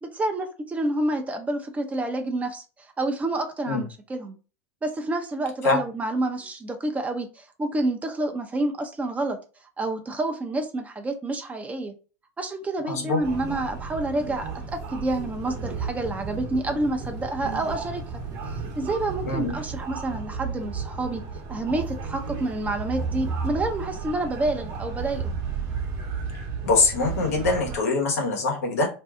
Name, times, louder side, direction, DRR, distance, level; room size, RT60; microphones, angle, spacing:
voice 1, 0.0-2.6 3.0-4.3 4.8-9.4 9.8-11.9 12.4-18.0 18.8-21.2 21.5-25.3, right 2 dB, 20° right, 5 dB, 0.6 m, -28 dB
voice 2, 12.9-13.2 19.3-19.5 26.6-28.9, left 3 dB, 85° left, 1 dB, 1.0 m, -23 dB
sound 1, 13.2-27.8, right 5 dB, 50° right, 0.9 m, -33 dB
2.6 x 2.3 x 3.5 m, 0.34 s
hypercardioid pair, 100°, 8 cm